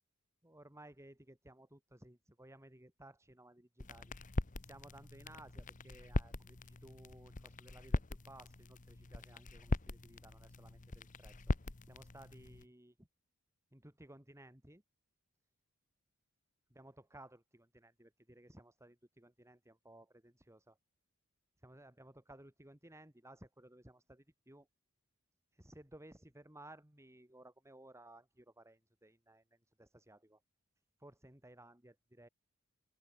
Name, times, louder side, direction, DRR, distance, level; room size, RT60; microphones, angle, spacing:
voice 1, 0.4-4.1 4.6-11.4 11.8-13.1 13.7-14.8 16.7-20.8 21.6-24.7 25.5-30.4 31.0-32.3, right 1 dB, 15° right, 4.4 m, -58 dB
sound 1, 3.8-12.6, left 2 dB, 35° left, 1.0 m, -41 dB
open air
head